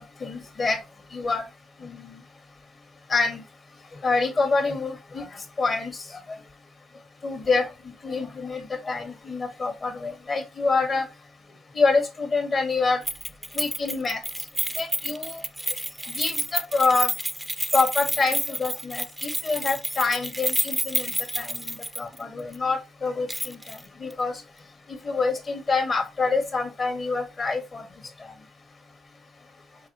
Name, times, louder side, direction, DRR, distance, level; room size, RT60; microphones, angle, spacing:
voice 1, 0.2-0.8 1.1-1.4 1.8-2.2 3.1-3.4 4.0-6.2 7.2-7.7 8.0-11.0 11.7-13.0 13.5-14.2 14.8-15.4 16.1-17.1 17.7-24.3 25.0-27.8 28.2-28.3, left 4 dB, 40° left, 5 dB, 1.7 m, -26 dB
Keys jangling, 13.1-22.2 22.5-22.6 23.3-23.8 24.1-24.2, right 1 dB, 5° right, 0.5 m, -29 dB
4.7 x 3.9 x 2.9 m, 0.27 s
cardioid pair, 90°, 0 cm